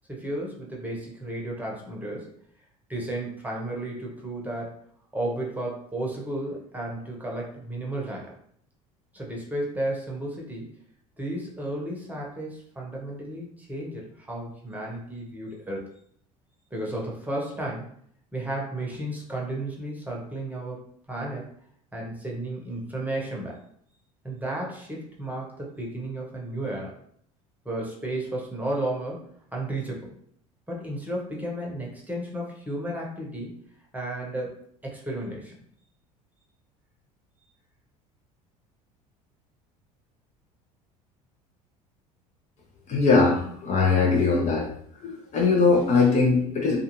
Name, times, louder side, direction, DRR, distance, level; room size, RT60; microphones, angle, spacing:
voice 1, 0.1-2.3 2.9-4.7 5.1-8.3 9.1-10.7 11.2-15.8 16.7-17.9 18.3-21.5 21.9-23.6 24.2-26.9 27.6-30.1 30.7-33.6 33.9-35.5, right 1 dB, 10° right, -2 dB, 0.9 m, -33 dB
voice 2, 42.9-44.7 45.0-46.8, left 4 dB, 40° left, -1 dB, 0.7 m, -21 dB
2.4 x 2.3 x 3.0 m, 0.65 s
hypercardioid pair, 70°, 19 cm